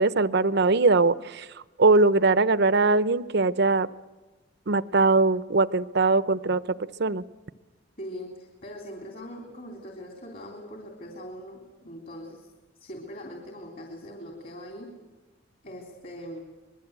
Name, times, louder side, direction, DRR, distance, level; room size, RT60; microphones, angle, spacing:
voice 1, 0.0-1.5 1.8-3.9 4.7-6.6 7.0-7.2, right 3 dB, 55° right, 16 dB, 0.7 m, -21 dB
voice 2, 8.0-12.5 12.8-14.9 15.6-16.4, equal, 45° left, 1 dB, 3.4 m, -41 dB
25.5 x 21.5 x 8.2 m, 1.2 s
head